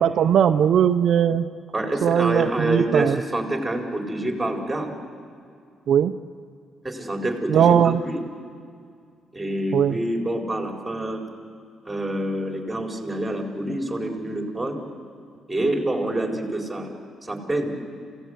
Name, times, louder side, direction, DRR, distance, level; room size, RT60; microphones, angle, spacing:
voice 1, 0.0-1.5 2.0-3.2 5.9-6.1 7.5-8.0 9.7-10.0, right 9 dB, 65° right, 8 dB, 0.6 m, -19 dB
voice 2, 1.7-4.9 6.8-8.2 9.3-11.2 11.8-14.7 15.5-16.9 17.3-17.7, right 1 dB, 10° right, 1 dB, 4.5 m, -27 dB
28.0 x 17.0 x 8.2 m, 2.3 s
cardioid pair, 90°, 0 cm